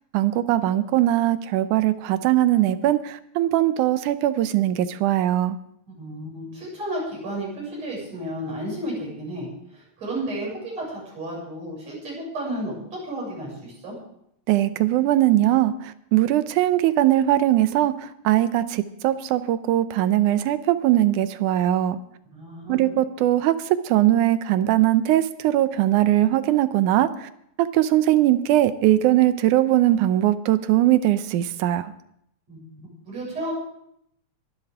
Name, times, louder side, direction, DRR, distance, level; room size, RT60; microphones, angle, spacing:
voice 1, 0.1-5.6 14.5-15.7 16.1-17.9 18.2-22.0 22.7-23.5 23.9-27.1 27.6-31.9, right 13 dB, 90° right, 12 dB, 2.3 m, -20 dB
voice 2, 6.0-9.5 9.7-12.7 13.0-13.9 22.3-23.0 32.5-33.5, right 1 dB, 60° right, -4 dB, 8.2 m, -32 dB
22.5 x 11.5 x 3.6 m, 0.73 s
omnidirectional pair, 3.4 m